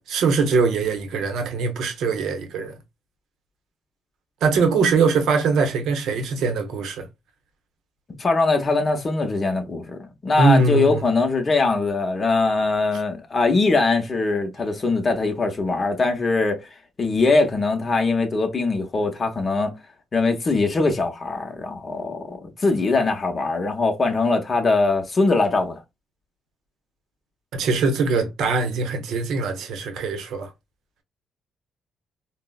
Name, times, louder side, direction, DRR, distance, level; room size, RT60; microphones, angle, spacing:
voice 1, 0.1-2.7 4.4-7.1 10.4-11.0 27.5-30.5, right 4 dB, 80° right, 0.7 m, -22 dB
voice 2, 8.2-16.7 17.0-19.7 20.1-25.8, left 3 dB, 35° left, 0.7 m, -22 dB
3.7 x 2.0 x 2.2 m
cardioid pair, 90°, 0 cm